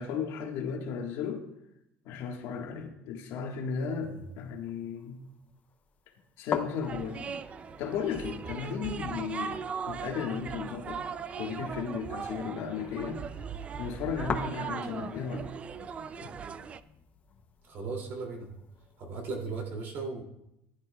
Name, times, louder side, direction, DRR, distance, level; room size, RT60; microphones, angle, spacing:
voice 1, 0.0-1.4 2.0-5.2 6.4-7.2 7.8-11.0 11.4-13.2 13.8-15.5 16.2-16.3, left 6 dB, 60° left, 2 dB, 1.5 m, -35 dB
sound 1, 3.8-19.6, left 6 dB, 30° left, 0.7 m, -44 dB
sound 2, 6.8-16.8, right 6 dB, 25° right, 0.3 m, -39 dB
voice 2, 17.6-18.5 19.0-20.2, right 4 dB, 45° right, 1 dB, 2.6 m, -37 dB
15.0 x 11.0 x 2.3 m, 0.82 s
cardioid pair, 150°, 5 cm